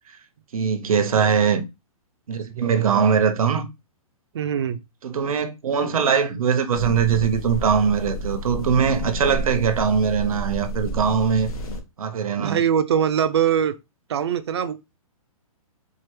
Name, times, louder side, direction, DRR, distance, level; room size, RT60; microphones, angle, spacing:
voice 1, 0.5-1.7 2.3-3.7 5.0-11.5 12.0-12.6, right 6 dB, 75° right, 0.8 m, -21 dB
voice 2, 4.3-4.8 12.4-13.7 14.1-15.0, right 8 dB, 45° right, 0.5 m, -22 dB
sound 1, 6.7-11.8, equal, 75° left, 1.1 m, -30 dB
4.7 x 2.4 x 3.1 m
hypercardioid pair, 170°, 19 cm